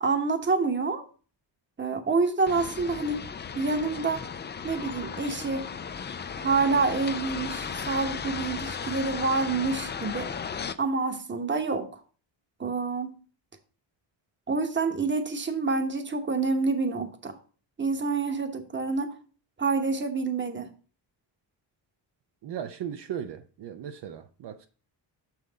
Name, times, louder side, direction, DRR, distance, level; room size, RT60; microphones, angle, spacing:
voice 1, 0.0-1.0 1.8-3.2 3.5-4.3 4.6-5.6 6.4-10.3 10.8-12.0 12.6-13.2 14.5-17.4 17.8-19.1 19.6-20.7, right 4 dB, 25° right, 1.0 m, -27 dB
sound 1, 2.5-10.7, left 6 dB, 25° left, 0.4 m, -35 dB
voice 2, 22.4-24.7, right 9 dB, 60° right, 0.6 m, -37 dB
6.3 x 5.8 x 3.9 m
cardioid pair, 110°, 46 cm